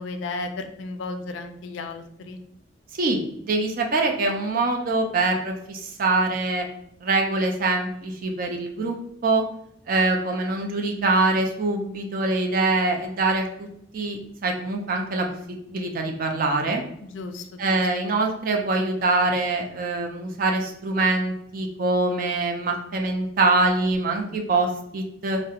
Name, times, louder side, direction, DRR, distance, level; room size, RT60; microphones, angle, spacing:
voice 1, 0.0-2.4 17.0-17.8, left 3 dB, 75° left, 7 dB, 0.3 m, -34 dB
voice 2, 2.9-6.7 7.0-9.0 9.2-9.4 9.9-13.7 13.9-16.8 17.6-25.4, right 2 dB, 45° right, 2 dB, 0.4 m, -24 dB
2.3 x 2.1 x 2.7 m, 0.75 s
head